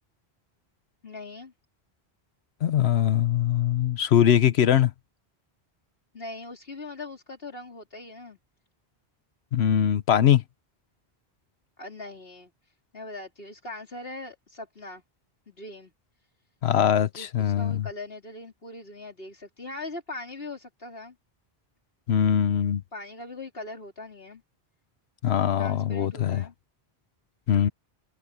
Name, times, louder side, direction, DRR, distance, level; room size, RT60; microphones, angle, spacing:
voice 1, 1.0-1.5 6.1-8.4 11.8-12.5 12.9-15.0 15.5-15.9 17.2-21.2 22.9-24.4 25.6-26.5, left 2 dB, 65° left, 4.3 m, -40 dB
voice 2, 2.6-4.9 9.5-10.4 16.6-17.9 22.1-22.8 25.2-26.4 27.5-27.7, left 9 dB, 85° left, 1.1 m, -22 dB
omnidirectional pair, 1.1 m